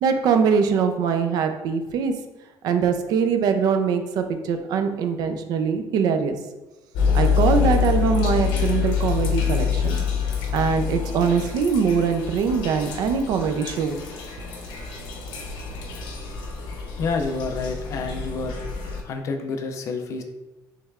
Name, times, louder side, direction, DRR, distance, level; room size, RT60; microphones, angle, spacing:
voice 1, 0.0-2.1 2.6-6.4 7.1-10.0 10.5-14.0, right 6 dB, 55° right, 7 dB, 0.5 m, -22 dB
sound 1, 6.9-19.0, left 6 dB, 80° left, 0.8 m, -26 dB
voice 2, 17.0-18.6 19.0-20.2, left 4 dB, 40° left, 5 dB, 0.4 m, -28 dB
6.3 x 3.2 x 2.4 m, 1.1 s
cardioid pair, 180°, 8 cm